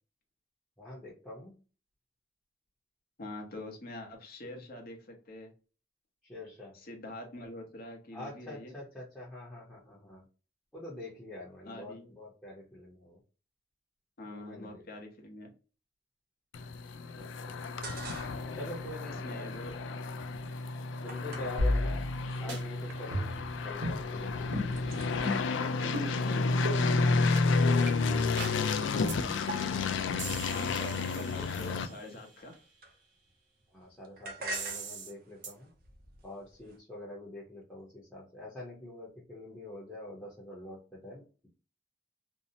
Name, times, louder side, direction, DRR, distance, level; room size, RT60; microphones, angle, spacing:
voice 1, 0.8-1.5 6.2-6.7 8.1-10.2 10.7-13.2 14.3-14.8 17.1-17.6 18.5-19.5 21.0-22.0 22.4-25.8 33.7-35.7 36.2-41.5, left 1 dB, 10° left, -5 dB, 0.7 m, -45 dB
voice 2, 3.2-5.5 6.7-8.7 11.6-12.1 14.2-15.5 19.1-19.7 25.3-26.6 30.5-32.5, left 1 dB, 55° left, 2 dB, 0.8 m, -45 dB
sound 1, 16.5-31.9, left 3 dB, 85° left, 0.3 m, -31 dB
sound 2, 17.6-18.6 18.9-22.4 22.9-23.4 23.7-24.1 24.4-29.4 30.1-33.3 33.6-36.8, right 1 dB, 55° right, 0.6 m, -48 dB
sound 3, 21.6-22.2 22.5-22.6 23.1-23.5 23.8-24.0 24.5-24.7 25.2-25.5 25.9-26.1 26.6-26.8 27.4-27.5 27.9-28.0 28.4-28.6 29.1-29.2 29.5-29.8 30.2-32.0 34.5-35.1 35.4-35.5, left 1 dB, 75° right, 1.0 m, -34 dB
2.7 x 2.0 x 2.6 m, 0.35 s
head